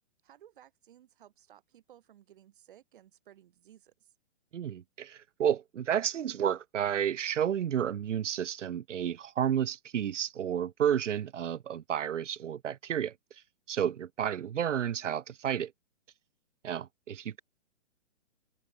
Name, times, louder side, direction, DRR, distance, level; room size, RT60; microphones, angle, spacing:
voice 1, 0.2-4.1, right 11 dB, 45° right, 5.4 m, -58 dB
voice 2, 4.5-13.1 13.7-15.7 16.6-17.4, right 9 dB, 80° right, 1.1 m, -31 dB
open air
hypercardioid pair, 170°, 36 cm